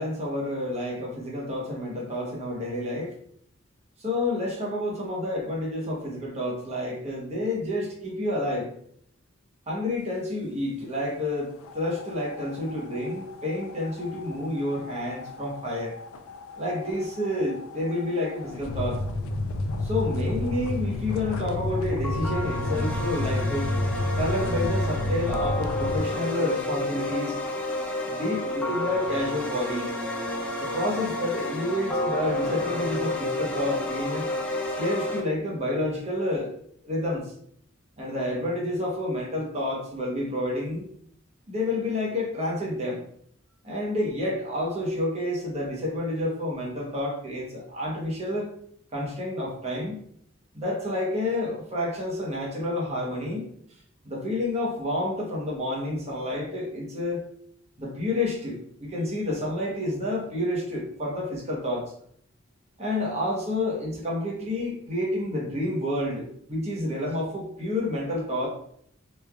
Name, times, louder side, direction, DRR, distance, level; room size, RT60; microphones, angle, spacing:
voice 1, 0.0-3.1 4.0-8.7 9.7-15.9 16.6-19.0 19.8-23.7 24.1-27.4 28.1-29.9 30.6-34.3 34.7-36.5 36.8-37.3 38.0-40.8 41.5-43.0 43.6-48.5 48.9-50.0 50.5-53.5 54.0-57.2 57.8-61.9 62.8-68.5, left 1 dB, 30° right, -4 dB, 0.8 m, -29 dB
sound 1, 11.6-26.0, left 2 dB, 85° left, 0.3 m, -31 dB
sound 2, 22.0-35.2, left 1 dB, 5° left, 0.4 m, -30 dB
3.1 x 2.3 x 2.2 m, 0.66 s
head